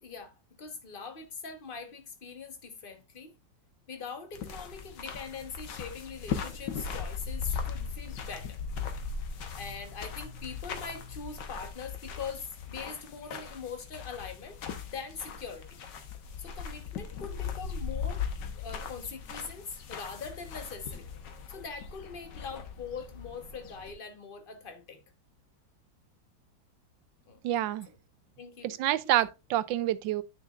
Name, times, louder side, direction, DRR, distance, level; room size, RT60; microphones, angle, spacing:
voice 1, 0.0-3.3 3.9-8.6 9.6-14.6 14.9-15.8 16.4-18.2 18.5-21.1 21.5-25.0 27.3-27.4 28.4-28.7 29.0-29.1, left 5 dB, 30° left, 1.2 m, -42 dB
sound 1, 4.3-23.9, left 6 dB, 70° left, 1.7 m, -39 dB
voice 2, 27.4-27.9 28.6-30.2, right 13 dB, 80° right, 1.3 m, -28 dB
9.4 x 6.3 x 2.5 m
omnidirectional pair, 2.0 m